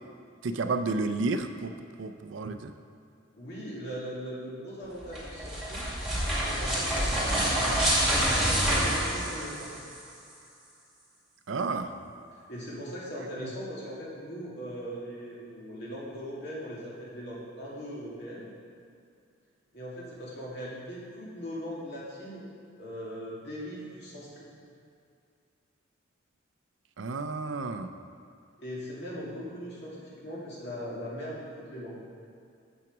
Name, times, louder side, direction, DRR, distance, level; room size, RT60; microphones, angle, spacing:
voice 1, 0.4-1.7 2.0-2.7 11.5-12.0 13.4-13.5 27.0-27.9, right 3 dB, 65° right, 9 dB, 0.5 m, -31 dB
voice 2, 3.4-5.9 6.3-7.4 8.2-9.8 12.3-18.5 19.7-22.5 22.8-24.5 28.6-32.1, equal, 55° left, -6 dB, 2.2 m, -40 dB
sound 1, 5.0-10.0, right 1 dB, ahead, 1.9 m, -27 dB
7.2 x 6.0 x 5.9 m, 2.4 s
head